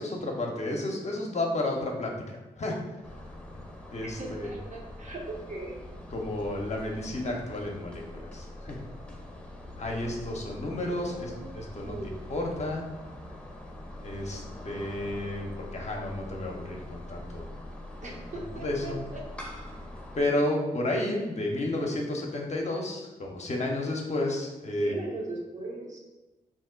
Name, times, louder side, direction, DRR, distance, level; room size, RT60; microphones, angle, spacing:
voice 1, 0.0-2.8 3.9-4.5 6.1-8.8 9.8-12.9 14.0-17.5 18.4-19.0 20.1-25.0, left 1 dB, 40° left, 0 dB, 0.7 m, -32 dB
sound 1, 3.0-20.2, left 1 dB, 5° left, 0.8 m, -43 dB
voice 2, 4.0-5.8 11.1-11.6 11.8-12.1 18.0-19.2 24.8-26.0, right 2 dB, 45° right, -2 dB, 0.8 m, -39 dB
2.6 x 2.1 x 3.7 m, 1.1 s
supercardioid pair, 40°, 17 cm